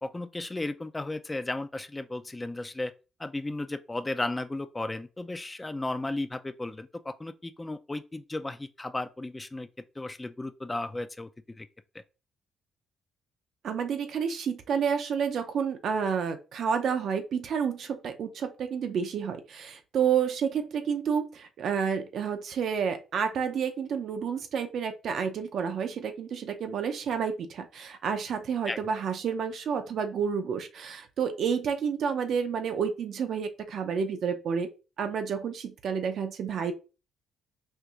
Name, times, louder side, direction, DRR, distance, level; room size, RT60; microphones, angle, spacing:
voice 1, 0.0-2.9 3.2-9.7 10.0-11.3 11.6-11.7 28.7-28.8, left 2 dB, 15° left, 0.4 m, -34 dB
voice 2, 13.6-34.7 35.0-36.7, right 7 dB, 65° right, 0.5 m, -30 dB
4.4 x 2.6 x 2.4 m
cardioid pair, 90°, 0 cm